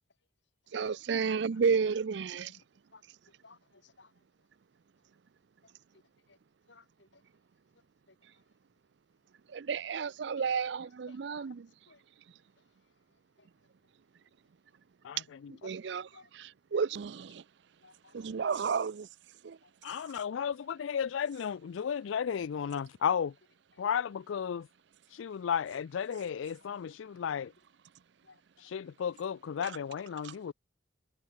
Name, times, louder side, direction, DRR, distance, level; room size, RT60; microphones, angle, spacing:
voice 1, 0.7-2.5 9.5-11.7 15.6-17.4 18.1-19.1 19.4-19.6 29.6-29.8 30.2-30.3, right 5 dB, 65° right, 0.4 m, -32 dB
voice 2, 3.4-4.1 6.3-6.4 6.7-7.2 10.0-10.1 10.4-10.5 11.1-11.5 11.9-12.0 13.4-13.5 16.1-16.3 17.8-18.3 19.6-19.7 20.0-20.2 23.7-23.9 26.6-26.8 28.2-28.4, left 3 dB, 70° left, 2.6 m, -58 dB
voice 3, 19.8-23.3 23.8-24.7 25.1-27.5 28.6-30.5, left 7 dB, 90° left, 0.4 m, -34 dB
head